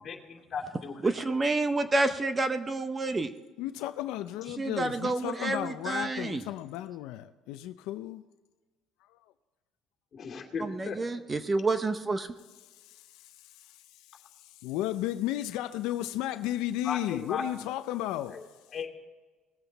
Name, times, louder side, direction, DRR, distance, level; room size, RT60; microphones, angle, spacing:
voice 1, 0.0-1.1 10.1-11.0 16.8-17.4 18.3-18.4 18.7-18.9, left 6 dB, 35° left, 2.6 m, -36 dB
voice 2, 1.0-3.3 4.6-6.4 10.6-12.3, right 2 dB, 20° right, 0.7 m, -29 dB
voice 3, 3.6-8.2 12.7-13.4 13.9-18.4, left 14 dB, 80° left, 0.5 m, -34 dB
19.5 x 7.9 x 4.1 m
cardioid pair, 135°, 0 cm